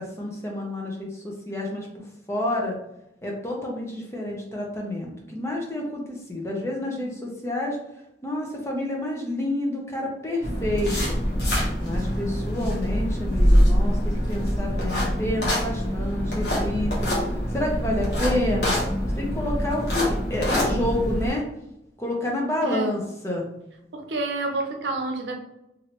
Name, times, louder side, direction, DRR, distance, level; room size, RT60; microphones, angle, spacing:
voice 1, 0.0-1.9 2.3-2.7 3.2-7.8 8.2-11.1 11.8-14.0 14.3-18.8 19.2-21.5 22.0-23.4, left 1 dB, 15° left, -1 dB, 0.6 m, -29 dB
sound 1, 10.4-21.3, equal, 70° left, 1.1 m, -24 dB
voice 2, 23.9-25.3, right 2 dB, 80° right, 3 dB, 0.6 m, -28 dB
3.2 x 2.6 x 2.9 m, 0.85 s
head